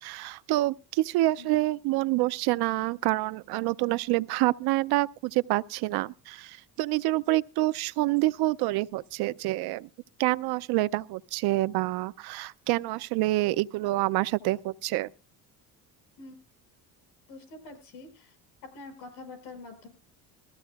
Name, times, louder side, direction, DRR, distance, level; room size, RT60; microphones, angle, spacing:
voice 1, 0.0-9.9 10.2-15.1, right 18 dB, 75° right, 0.6 m, -27 dB
voice 2, 17.3-18.3 18.6-19.9, left 3 dB, 90° left, 5.5 m, -45 dB
21.0 x 14.5 x 2.4 m
cardioid pair, 165°, 38 cm